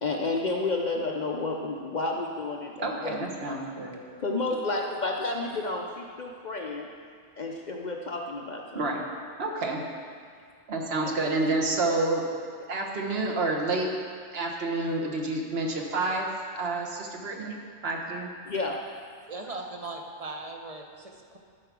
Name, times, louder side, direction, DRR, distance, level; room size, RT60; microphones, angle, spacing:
voice 1, 0.0-3.6 4.2-6.9 7.4-8.8 11.0-11.1 18.5-18.8, left 3 dB, 50° left, 1 dB, 0.6 m, -31 dB
voice 2, 2.8-4.0 8.7-9.0 9.4-9.8 10.7-12.2 12.7-13.9 14.3-17.5 17.8-18.3, right 2 dB, 60° right, 0 dB, 1.3 m, -29 dB
voice 3, 19.3-21.4, right 2 dB, 35° right, 2 dB, 0.8 m, -39 dB
12.0 x 4.7 x 6.0 m, 2.1 s
omnidirectional pair, 1.2 m